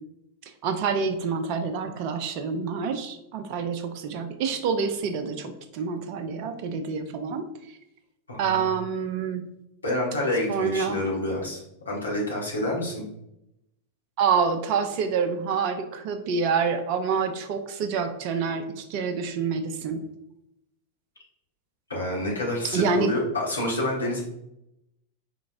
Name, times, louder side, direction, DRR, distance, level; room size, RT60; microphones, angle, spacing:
voice 1, 0.6-7.5 8.4-9.4 10.5-11.0 14.2-20.0 22.7-23.1, right 6 dB, 45° right, 7 dB, 0.4 m, -27 dB
voice 2, 8.3-8.7 9.8-13.0 21.9-24.2, left 1 dB, 75° left, -4 dB, 1.4 m, -28 dB
4.3 x 3.8 x 2.5 m, 0.82 s
figure-of-eight pair, 90°, 0 cm